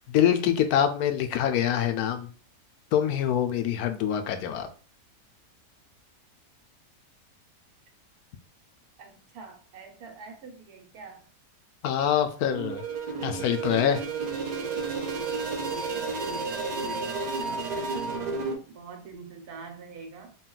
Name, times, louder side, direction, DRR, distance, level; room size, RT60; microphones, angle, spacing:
voice 1, 0.1-2.3 2.9-4.7 11.8-12.8 13.2-14.0, left 9 dB, 85° left, 8 dB, 1.1 m, -25 dB
voice 2, 9.0-11.2 15.9-20.4, right 5 dB, 85° right, 4 dB, 1.4 m, -45 dB
sound 1, 12.5-18.5, right 4 dB, 65° right, 0.4 m, -31 dB
4.0 x 2.3 x 3.8 m, 0.38 s
omnidirectional pair, 1.6 m